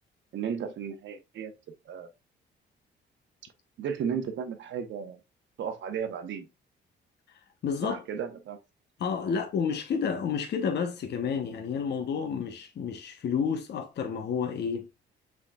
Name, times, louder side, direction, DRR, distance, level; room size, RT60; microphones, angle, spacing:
voice 1, 0.3-1.5 1.9-2.1 3.8-5.2 5.6-6.5 7.8-8.6, right 7 dB, 70° right, 0.9 m, -34 dB
voice 2, 7.6-8.0 9.0-14.9, left 6 dB, 60° left, 0.8 m, -30 dB
6.1 x 3.7 x 2.3 m
cardioid pair, 90°, 20 cm